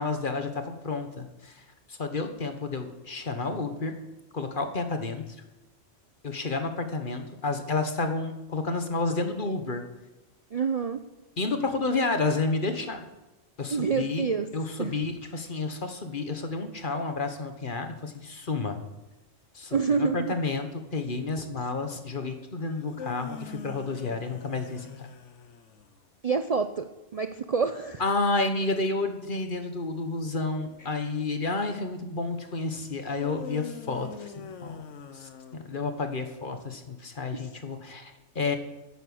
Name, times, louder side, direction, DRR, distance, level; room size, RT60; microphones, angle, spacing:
voice 1, 0.0-4.0 4.3-5.4 6.2-9.8 11.4-13.0 13.6-14.3 14.5-18.8 19.5-25.1 28.0-34.8 35.1-38.6, left 3 dB, 45° left, 7 dB, 1.4 m, -30 dB
voice 2, 10.5-11.0 13.7-14.5 14.8-14.9 19.7-20.4 26.2-26.9 27.1-28.0 37.3-37.4, right 5 dB, 45° right, 8 dB, 0.5 m, -27 dB
sound 1, 22.7-26.0 33.1-36.1, left 6 dB, 90° left, 1.2 m, -43 dB
11.0 x 9.1 x 7.8 m, 1.0 s
omnidirectional pair, 1.2 m